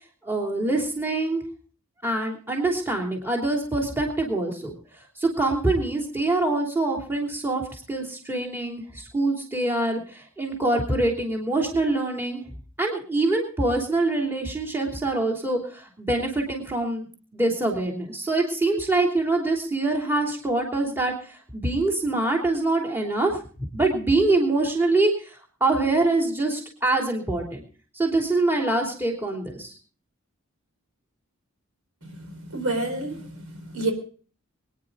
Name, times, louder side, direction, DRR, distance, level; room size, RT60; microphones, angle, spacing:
voice 1, 0.2-1.4 2.0-4.7 5.2-12.4 12.8-17.1 17.3-23.4 23.7-27.6 27.9-29.7, right 2 dB, 10° right, 0 dB, 3.1 m, -25 dB
voice 2, 32.0-33.9, right 2 dB, 85° right, 5 dB, 4.3 m, -30 dB
24.5 x 9.9 x 3.9 m, 0.41 s
head